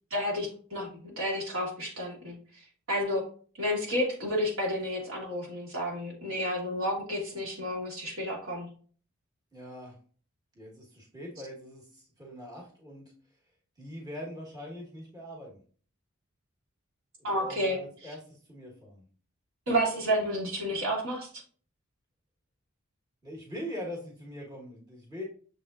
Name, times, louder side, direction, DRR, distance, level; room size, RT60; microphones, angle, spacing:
voice 1, 0.1-0.9 1.2-2.4 2.9-3.2 3.6-8.7 17.2-17.8 19.7-21.3, equal, 65° right, -2 dB, 1.5 m, -30 dB
voice 2, 9.5-10.0 10.5-13.1 13.8-15.6 17.2-19.1 23.2-25.2, equal, 20° right, -3 dB, 1.1 m, -42 dB
6.6 x 3.5 x 2.3 m, 0.43 s
head